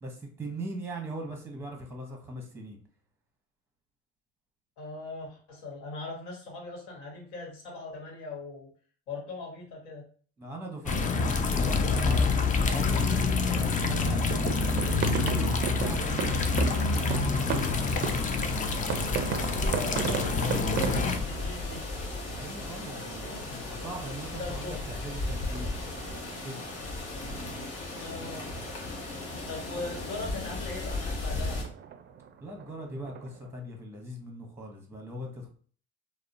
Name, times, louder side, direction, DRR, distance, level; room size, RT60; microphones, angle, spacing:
voice 1, 0.0-2.8 10.4-17.6 22.2-25.7 26.4-26.6 32.4-35.5, right 1 dB, 10° right, 2 dB, 0.8 m, -40 dB
voice 2, 4.8-8.7 9.1-10.0 19.4-21.9 23.2-23.8 24.4-24.8 28.0-28.5 29.5-31.6, left 3 dB, 80° left, -1 dB, 1.1 m, -40 dB
sound 1, 10.9-21.2, left 4 dB, 30° left, 0.4 m, -27 dB
sound 2, 13.8-33.5, right 7 dB, 40° right, 0.4 m, -38 dB
sound 3, 16.0-31.6, left 2 dB, 55° left, 1.0 m, -37 dB
2.7 x 2.0 x 2.5 m, 0.44 s
supercardioid pair, 80°, 29 cm